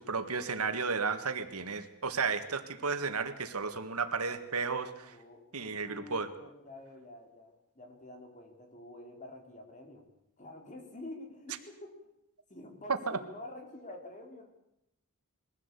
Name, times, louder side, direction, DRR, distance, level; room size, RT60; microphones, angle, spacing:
voice 1, 0.0-5.1 5.5-6.3 13.1-13.2, right 5 dB, 85° right, 9 dB, 1.8 m, -33 dB
voice 2, 4.6-10.1 10.4-11.9 12.5-14.5, left 1 dB, 35° left, 4 dB, 3.7 m, -48 dB
22.0 x 16.0 x 8.3 m, 0.84 s
head